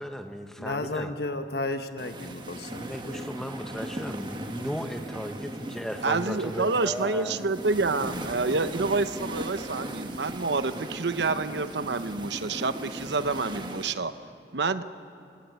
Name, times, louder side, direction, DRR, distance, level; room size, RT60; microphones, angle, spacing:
voice 1, 0.0-1.1 2.7-7.4, equal, 5° left, 6 dB, 1.3 m, -36 dB
voice 2, 0.6-3.3, left 2 dB, 65° left, 8 dB, 1.3 m, -33 dB
sound 1, 2.0-13.9, right 1 dB, 25° right, 1.5 m, -38 dB
voice 3, 6.0-14.1 14.5-14.8, right 3 dB, 80° right, 12 dB, 0.9 m, -28 dB
29.5 x 17.0 x 9.4 m, 2.5 s
head